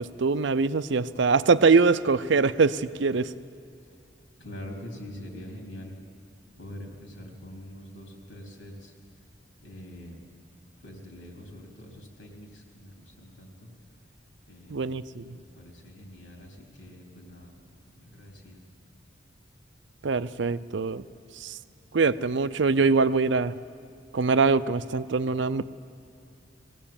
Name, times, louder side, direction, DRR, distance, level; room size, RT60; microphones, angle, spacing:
voice 1, 0.0-3.3 14.7-15.2 20.0-21.0 21.4-21.6 21.9-23.5 24.1-25.6, right 4 dB, 70° right, 14 dB, 0.6 m, -23 dB
voice 2, 4.4-6.0 6.6-8.9 9.6-10.2 10.8-13.7 14.5-14.9 15.3-18.6, left 1 dB, 80° left, 1 dB, 3.5 m, -44 dB
20.5 x 16.5 x 8.8 m, 2.5 s
head